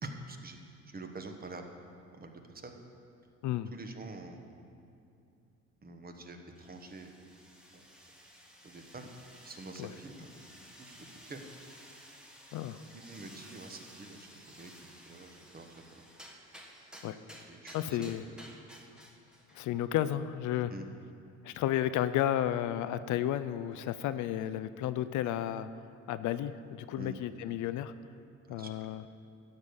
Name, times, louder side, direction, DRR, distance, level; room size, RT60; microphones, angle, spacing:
voice 1, 0.0-0.6 0.9-1.6 2.1-2.8 3.7-4.5 5.8-7.1 7.7-7.8 8.6-9.1 9.4-11.0 11.3-11.4 12.9-14.7 15.1-15.8 17.5-18.0 20.7-20.8 27.0-27.2 28.5-28.7, right 3 dB, 30° right, 5 dB, 1.2 m, -46 dB
sound 1, 6.5-19.7, equal, ahead, 1.4 m, -54 dB
voice 2, 17.7-18.2 19.5-20.7 21.4-25.7 26.1-27.9 28.5-29.0, left 12 dB, 65° left, 13 dB, 0.5 m, -32 dB
12.5 x 5.2 x 8.1 m, 2.6 s
cardioid pair, 100°, 32 cm